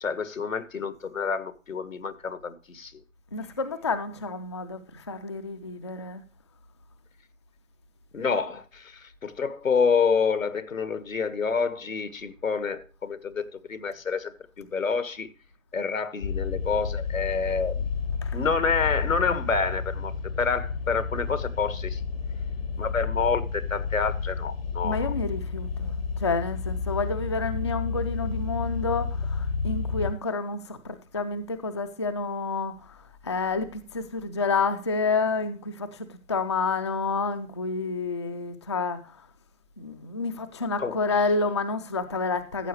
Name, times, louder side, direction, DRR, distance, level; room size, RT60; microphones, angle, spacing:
voice 1, 0.0-3.0 8.1-15.3 15.7-17.8 18.3-22.0 22.8-25.1 40.8-41.0, left 5 dB, 80° left, 1.7 m, -28 dB
voice 2, 3.3-6.2 18.2-18.4 24.8-33.0 33.2-39.2 39.8-42.7, left 4 dB, 25° left, 0.4 m, -29 dB
sound 1, 16.2-30.1, left 5 dB, 45° left, 0.9 m, -31 dB
14.0 x 7.4 x 3.1 m
figure-of-eight pair, 145°, 39 cm